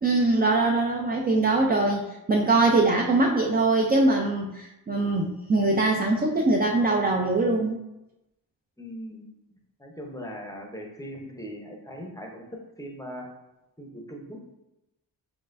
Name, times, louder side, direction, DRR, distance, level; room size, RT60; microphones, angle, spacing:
voice 1, 0.0-7.8, right 2 dB, 25° right, 0 dB, 0.3 m, -22 dB
voice 2, 8.8-9.3 9.8-13.3 13.8-14.4, equal, 10° left, 0 dB, 0.6 m, -39 dB
4.3 x 3.1 x 2.5 m, 0.95 s
cardioid pair, 80°, 42 cm